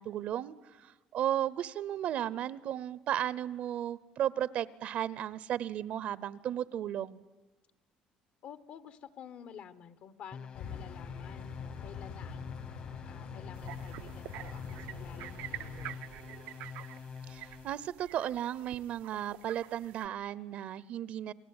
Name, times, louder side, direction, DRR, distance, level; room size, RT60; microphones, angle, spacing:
voice 1, 0.0-7.2 17.3-21.3, right 11 dB, 60° right, 20 dB, 0.8 m, -35 dB
voice 2, 8.4-12.6 13.0-16.1, left 8 dB, 60° left, 14 dB, 1.4 m, -51 dB
sound 1, 10.3-17.9, left 6 dB, 40° left, 1.3 m, -46 dB
sound 2, 10.5-15.9, left 6 dB, 90° left, 7.2 m, -45 dB
sound 3, 13.5-20.1, right 14 dB, 85° right, 0.8 m, -47 dB
29.5 x 20.5 x 9.8 m, 1.2 s
cardioid pair, 125°, 3 cm